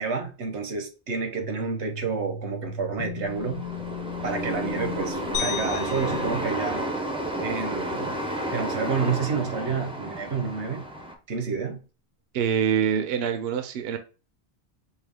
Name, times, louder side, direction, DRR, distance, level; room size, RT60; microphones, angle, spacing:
voice 1, 0.0-3.6 4.2-6.8 7.4-8.2 8.5-10.8 11.3-11.8, right 5 dB, 85° right, 1.2 m, -29 dB
sound 1, 1.4-6.5, left 4 dB, 85° left, 0.9 m, -37 dB
sound 2, 3.2-11.1, right 1 dB, 5° right, 0.4 m, -32 dB
sound 3, 5.3-7.7, left 8 dB, 50° left, 1.0 m, -36 dB
voice 2, 12.3-14.0, right 8 dB, 65° right, 0.7 m, -25 dB
4.5 x 2.3 x 3.4 m
omnidirectional pair, 1.2 m